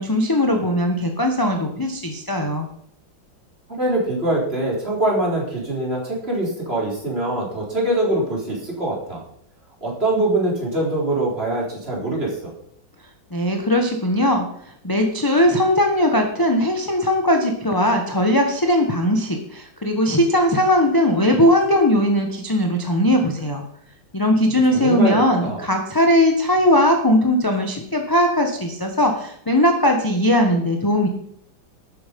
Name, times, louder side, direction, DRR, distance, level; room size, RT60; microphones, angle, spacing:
voice 1, 0.0-2.7 13.3-23.6 24.1-31.1, left 1 dB, 15° left, 2 dB, 0.9 m, -19 dB
voice 2, 3.8-9.2 9.8-12.5 24.7-25.6, right 1 dB, 30° right, -3 dB, 4.1 m, -23 dB
12.0 x 9.2 x 5.3 m, 0.70 s
omnidirectional pair, 2.2 m